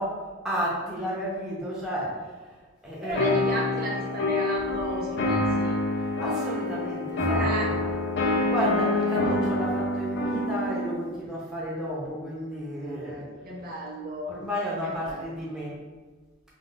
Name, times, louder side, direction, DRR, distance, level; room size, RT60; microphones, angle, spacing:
voice 1, 0.0-3.6 6.0-7.9 8.3-13.2 14.3-15.8, equal, 5° right, -6 dB, 0.7 m, -32 dB
voice 2, 3.0-5.8 7.3-7.7 8.6-9.2 12.7-14.4 14.8-15.5, right 1 dB, 50° right, -3 dB, 0.5 m, -34 dB
sound 1, 3.1-10.9, left 2 dB, 60° left, 0.5 m, -26 dB
2.4 x 2.3 x 3.7 m, 1.3 s
head